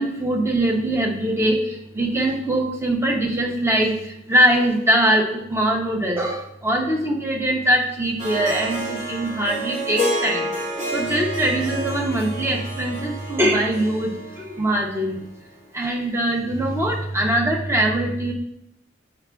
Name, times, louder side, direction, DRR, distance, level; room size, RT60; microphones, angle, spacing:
voice 1, 0.0-4.0 4.3-10.5 10.9-14.1 14.6-15.2 15.7-18.3, right 1 dB, 15° right, 0 dB, 0.7 m, -22 dB
Harp, 8.2-15.4, equal, 40° right, 2.0 m, -29 dB
8.5 x 5.0 x 2.2 m, 0.78 s
head